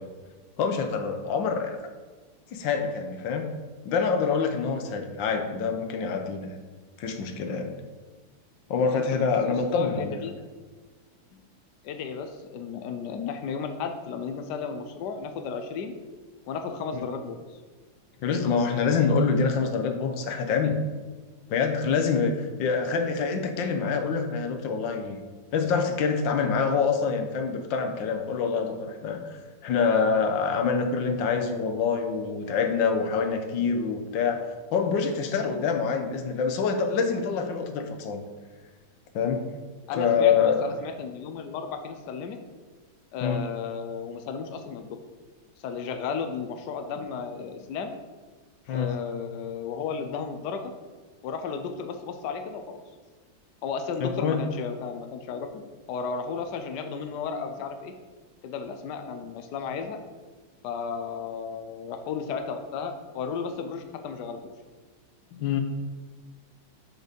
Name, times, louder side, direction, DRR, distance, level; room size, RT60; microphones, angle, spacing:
voice 1, 0.6-1.8 2.5-3.5 3.8-6.6 7.0-7.7 8.7-10.2 16.9-17.0 18.2-20.8 21.5-25.2 25.5-29.4 29.6-34.4 34.7-38.2 39.1-39.4 40.0-40.7 43.2-43.4 48.7-48.9 54.0-54.4 65.3-65.6, left 5 dB, 85° left, 5 dB, 1.6 m, -26 dB
voice 2, 8.9-10.3 11.3-11.4 11.8-15.9 16.5-17.6 39.9-42.4 43.1-45.0 45.6-47.9 48.7-50.7 51.2-52.8 53.6-55.6 55.9-57.9 58.4-60.0 60.6-64.5, left 5 dB, 70° left, 6 dB, 1.2 m, -34 dB
6.5 x 6.4 x 5.1 m, 1.4 s
omnidirectional pair, 2.0 m